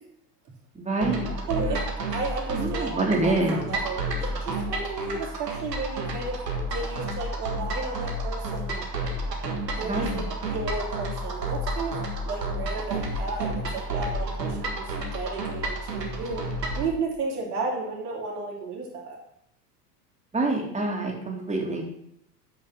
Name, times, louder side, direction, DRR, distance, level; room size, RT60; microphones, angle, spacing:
voice 1, 0.7-1.8 2.5-3.6 9.8-10.2 20.3-21.9, right 2 dB, 15° right, -1 dB, 2.8 m, -27 dB
sound 1, 1.0-16.9, right 1 dB, 85° right, 1.7 m, -31 dB
voice 2, 1.5-1.8 2.1-6.4 6.7-8.9 9.7-16.4 16.7-19.2, right 3 dB, 70° right, -1 dB, 3.3 m, -33 dB
7.7 x 5.6 x 7.4 m, 0.73 s
hypercardioid pair, 80°, 48 cm